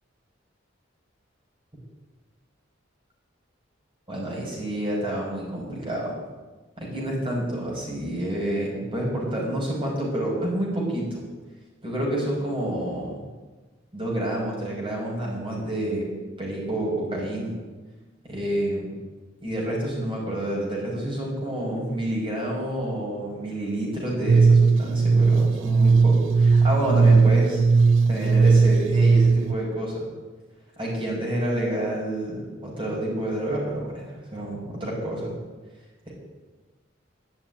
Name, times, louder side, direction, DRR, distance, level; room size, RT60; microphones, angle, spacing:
voice 1, 4.1-6.2 6.8-11.2 11.8-13.2 13.9-16.1 16.4-17.5 18.2-18.9 19.4-27.6 28.1-30.1 30.8-34.0 34.3-35.3 36.1-36.2, right 1 dB, 25° right, -3 dB, 5.6 m, -28 dB
sound 1, 24.3-29.6, right 4 dB, 80° right, 0.5 m, -17 dB
12.5 x 7.3 x 9.4 m, 1.3 s
head